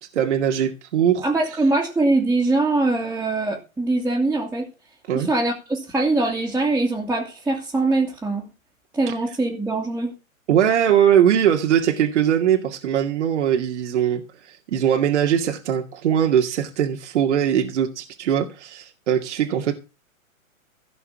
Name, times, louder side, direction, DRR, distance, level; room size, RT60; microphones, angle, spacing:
voice 1, 0.1-1.6 5.1-5.3 9.1-9.2 10.5-19.7, right 9 dB, 55° right, 2.3 m, -21 dB
voice 2, 1.2-4.7 5.1-8.4 8.9-10.1, right 2 dB, 5° right, 2.4 m, -22 dB
16.5 x 5.8 x 7.2 m
hypercardioid pair, 130°, 41 cm